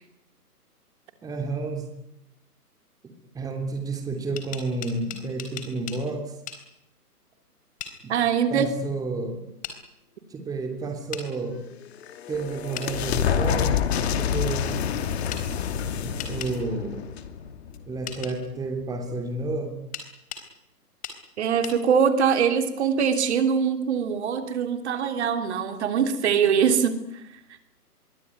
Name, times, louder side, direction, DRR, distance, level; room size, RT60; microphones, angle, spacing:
voice 1, 1.2-1.9 3.0-6.3 8.0-8.1 8.5-9.4 10.3-11.6 12.3-13.8 14.2-14.7 16.0-17.0 17.8-19.8, right 3 dB, 10° right, 4 dB, 3.1 m, -31 dB
sound 1, 4.2-6.0 6.5-6.6 7.8-8.0 9.6-9.8 11.1-11.3 12.7-12.9 15.3-15.4 16.2-16.5 18.1-18.3 19.9-20.5 21.0-21.2 21.6-21.8, left 8 dB, 15° left, 3.9 m, -37 dB
voice 2, 8.1-8.7 21.4-27.0, right 7 dB, 45° right, 8 dB, 3.3 m, -23 dB
sound 2, 11.7-18.2, left 8 dB, 40° left, 2.7 m, -28 dB
26.0 x 23.0 x 9.7 m, 0.80 s
hypercardioid pair, 145°, 47 cm